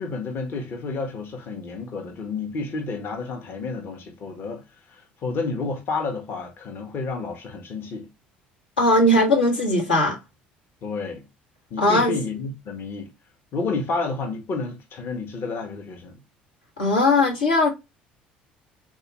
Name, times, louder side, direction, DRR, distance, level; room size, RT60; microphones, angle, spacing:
voice 1, 0.0-8.1 10.8-11.2 11.7-13.1 13.5-16.2, left 3 dB, 50° left, 0.8 m, -30 dB
voice 2, 8.8-10.2 11.8-12.2 16.8-17.7, left 1 dB, 90° left, 1.0 m, -19 dB
3.4 x 2.3 x 2.9 m
hypercardioid pair, 60°, 5 cm